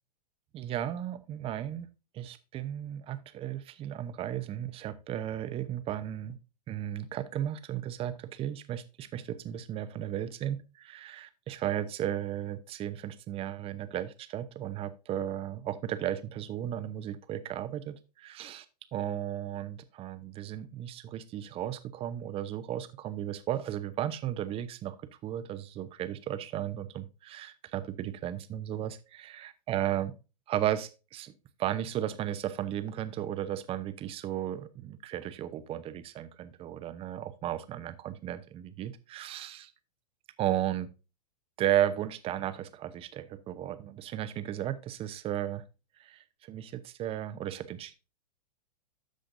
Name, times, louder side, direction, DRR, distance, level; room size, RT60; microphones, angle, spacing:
voice 1, 0.5-1.9 2.1-6.4 6.7-18.6 18.9-30.1 30.5-31.3 31.6-39.7 40.4-40.9 41.6-45.6 46.0-47.9, right 11 dB, 25° right, 12 dB, 0.9 m, -35 dB
13.0 x 5.0 x 2.6 m, 0.30 s
hypercardioid pair, 105°, 21 cm